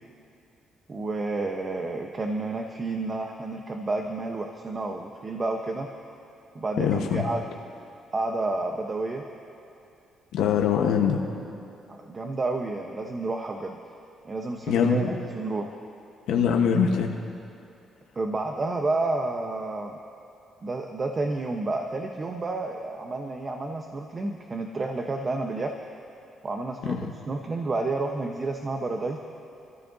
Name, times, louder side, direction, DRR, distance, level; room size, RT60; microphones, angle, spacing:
voice 1, 0.9-5.9 6.5-7.4 8.1-9.2 11.9-13.8 14.2-15.7 18.1-20.0 20.6-25.7 26.4-29.2, right 2 dB, 35° right, 3 dB, 1.0 m, -30 dB
voice 2, 6.8-7.2 10.3-11.2 14.7-15.0 16.3-17.1 26.8-27.1, left 7 dB, 85° left, 1 dB, 1.2 m, -23 dB
29.0 x 14.0 x 2.7 m, 2.7 s
cardioid pair, 90°, 0 cm